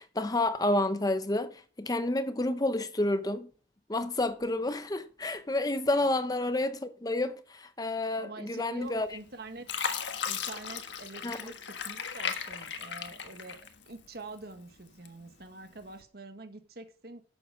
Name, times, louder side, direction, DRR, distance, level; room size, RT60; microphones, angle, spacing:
voice 1, 0.0-3.5 3.9-9.1 11.2-11.4, left 2 dB, 20° left, 0.7 m, -30 dB
voice 2, 8.2-9.8 10.2-13.6 13.9-17.2, right 2 dB, 60° right, 1.6 m, -46 dB
Fill (with liquid), 8.9-9.3 9.7-14.1 14.5-15.3 15.9-16.0, left 7 dB, 85° left, 1.5 m, -36 dB
11.5 x 8.0 x 4.9 m
head